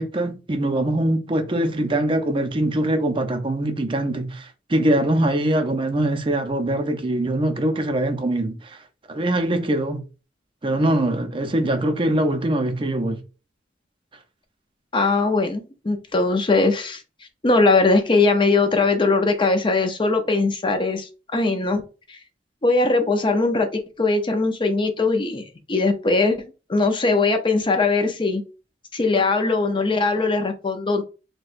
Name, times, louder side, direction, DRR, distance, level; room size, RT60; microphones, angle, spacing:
voice 1, 0.0-8.8 9.1-10.0 10.6-13.2 29.1-29.2, right 1 dB, 30° right, 0.5 m, -23 dB
voice 2, 14.9-17.0 17.4-21.8 22.1-22.2 22.6-28.4 28.9-31.0, left 3 dB, 25° left, 0.5 m, -20 dB
4.3 x 2.2 x 2.5 m
head